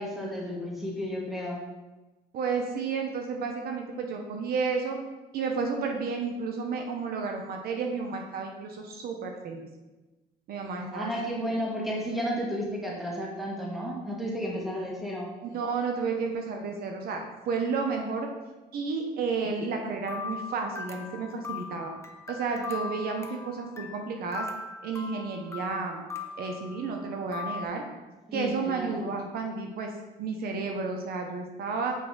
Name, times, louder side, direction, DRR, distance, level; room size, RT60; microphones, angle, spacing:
voice 1, 0.0-1.6 10.9-15.3 28.3-29.1, equal, ahead, -4 dB, 1.7 m, -32 dB
voice 2, 2.3-5.0 5.3-9.6 10.5-11.1 15.4-18.3 18.7-21.9 22.3-24.5 24.8-26.0 26.4-27.8 28.3-29.9 30.2-32.0, right 4 dB, 65° right, 3 dB, 0.9 m, -31 dB
Hand Crank Music Box Amazing Grace, 20.1-27.7, left 4 dB, 15° left, 0.7 m, -39 dB
6.6 x 4.5 x 3.9 m, 1.1 s
cardioid pair, 110°, 17 cm